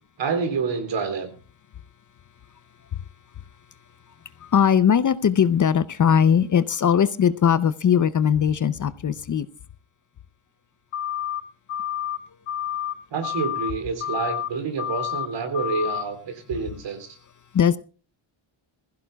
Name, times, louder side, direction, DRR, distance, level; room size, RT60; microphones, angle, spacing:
voice 1, 0.2-1.3 13.1-17.2, right 5 dB, 60° right, 8 dB, 3.5 m, -28 dB
voice 2, 4.4-9.5 17.5-17.8, left 8 dB, 40° left, 15 dB, 0.6 m, -20 dB
sound 1, 10.9-11.4 11.7-12.2 12.5-12.9 13.2-13.7 14.0-14.5 14.8-15.3 15.5-16.0, left 11 dB, 85° left, 1.7 m, -29 dB
21.5 x 15.5 x 2.3 m, 0.36 s
wide cardioid pair, 155°, 48 cm